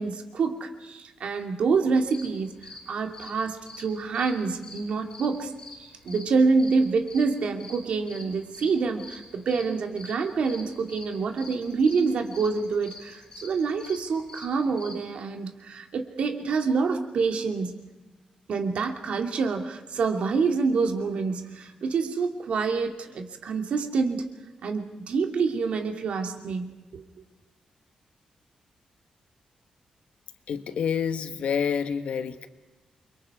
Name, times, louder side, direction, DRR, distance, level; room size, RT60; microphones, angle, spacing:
voice 1, 0.0-5.5 5.8-17.8 18.5-24.2 24.6-27.0, right 4 dB, 65° right, 4 dB, 2.5 m, -27 dB
sound 1, 1.9-15.0, left 2 dB, 35° left, 5.1 m, -46 dB
voice 2, 30.5-32.5, left 7 dB, 70° left, 9 dB, 1.4 m, -28 dB
29.0 x 24.0 x 4.9 m, 1.2 s
wide cardioid pair, 155°, 2 cm